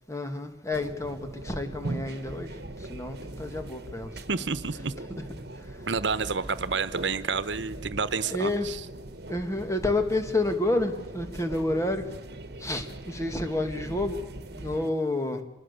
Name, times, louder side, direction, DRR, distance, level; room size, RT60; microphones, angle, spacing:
voice 1, 0.1-2.5 2.8-4.1 8.3-8.7 9.3-12.1 12.6-14.3 14.5-15.4, left 2 dB, 15° left, 6 dB, 2.2 m, -29 dB
sound 1, 0.7-14.9, right 2 dB, 55° right, 1.4 m, -40 dB
voice 2, 4.3-4.9 5.9-8.8, right 5 dB, 75° right, 14 dB, 1.1 m, -29 dB
26.0 x 20.5 x 6.9 m, 1.0 s
head